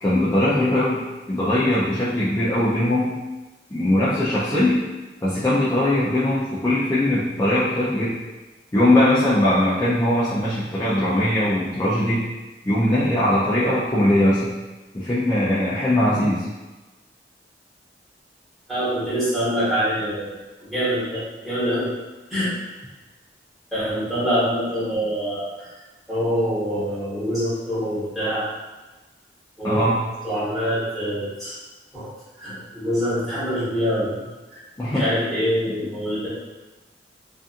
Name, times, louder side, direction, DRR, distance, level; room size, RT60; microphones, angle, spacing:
voice 1, 0.0-1.0 1.3-3.1 3.7-4.8 5.2-8.1 8.7-12.2 12.6-14.5 14.9-16.5 29.6-30.0 34.8-35.0, left 1 dB, 20° left, -10 dB, 0.4 m, -20 dB
voice 2, 18.7-21.9 22.3-22.5 23.7-25.7 26.1-28.4 29.6-29.8 30.2-31.6 31.9-32.1 32.4-34.6 34.9-36.3, equal, ahead, -13 dB, 1.2 m, -25 dB
2.6 x 2.4 x 2.4 m, 1.2 s
head